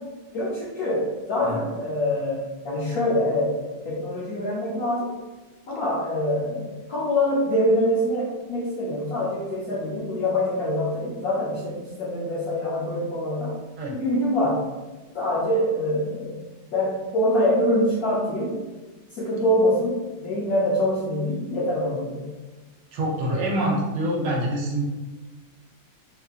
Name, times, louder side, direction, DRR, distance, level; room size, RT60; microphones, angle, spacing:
voice 1, 0.3-3.5 3.8-5.2 5.7-13.5 13.9-14.6 15.1-16.4 16.7-18.5 19.1-22.2, left 1 dB, 70° left, -5 dB, 0.9 m, -24 dB
voice 2, 22.9-24.8, right 1 dB, 75° right, -2 dB, 1.3 m, -25 dB
4.2 x 2.5 x 2.4 m, 1.2 s
omnidirectional pair, 2.1 m